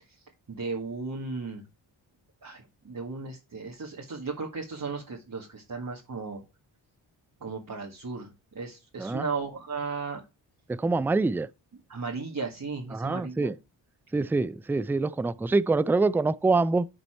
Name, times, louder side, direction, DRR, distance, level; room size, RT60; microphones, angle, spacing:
voice 1, 0.5-1.6 2.4-6.4 7.4-10.2 11.9-13.5, right 4 dB, 40° right, 2.0 m, -35 dB
voice 2, 10.7-11.5 12.9-13.6 14.1-16.9, right 3 dB, 5° right, 0.3 m, -25 dB
11.5 x 4.1 x 4.5 m
supercardioid pair, 45°, 49 cm